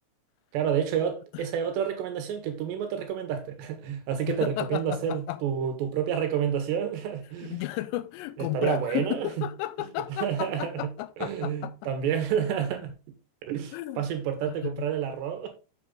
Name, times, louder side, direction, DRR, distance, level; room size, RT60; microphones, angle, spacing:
voice 1, 0.5-7.6 8.5-9.5 10.2-10.9 11.2-12.9 13.4-15.5, right 8 dB, 80° right, 3.4 m, -29 dB
voice 2, 4.3-5.4 7.4-11.7 13.7-14.0 14.6-14.7, left 16 dB, 90° left, 2.8 m, -33 dB
6.8 x 6.7 x 3.8 m
omnidirectional pair, 5.0 m